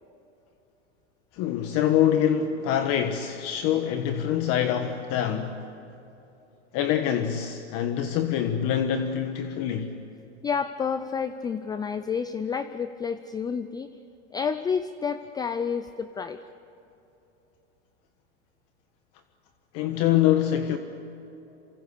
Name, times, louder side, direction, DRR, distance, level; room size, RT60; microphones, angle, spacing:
voice 1, 1.3-5.6 6.7-9.9 19.7-20.8, left 10 dB, 45° left, 1.4 m, -25 dB
voice 2, 10.4-13.9 14.3-16.4, left 6 dB, 10° left, 0.5 m, -30 dB
28.0 x 26.0 x 6.8 m
supercardioid pair, 135°, 34 cm